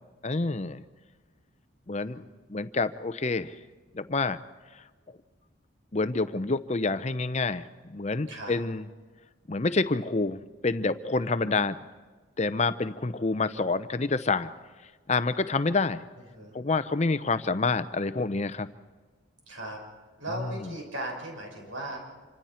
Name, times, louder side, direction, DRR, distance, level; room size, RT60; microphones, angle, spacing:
voice 1, 0.2-0.8 1.9-2.2 2.5-3.6 3.9-4.4 4.7-4.8 5.9-8.8 9.5-11.8 12.4-14.5 15.1-16.0 16.5-18.7 20.6-20.7, left 3 dB, 35° left, 13 dB, 0.6 m, -28 dB
voice 2, 1.9-2.4 8.3-8.6 16.3-16.6 19.5-19.8 20.2-22.0, right 1 dB, 75° right, 0 dB, 5.7 m, -37 dB
27.0 x 25.5 x 4.4 m, 1.4 s
head